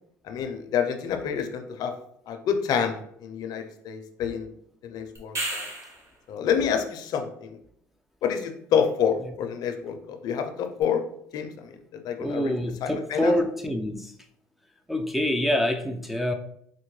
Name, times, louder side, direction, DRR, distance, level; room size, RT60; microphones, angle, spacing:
voice 1, 0.2-1.9 2.3-4.5 4.8-5.7 6.3-7.6 8.2-11.0 11.3-12.5 12.8-13.3, left 7 dB, 60° left, 6 dB, 0.5 m, -28 dB
sound 1, 5.2-6.1 10.8-10.9, right 1 dB, 40° right, 1.3 m, -32 dB
voice 2, 12.2-14.1 14.9-16.3, left 1 dB, 5° right, 4 dB, 0.3 m, -26 dB
4.3 x 2.1 x 3.1 m, 0.69 s
supercardioid pair, 80°, 7 cm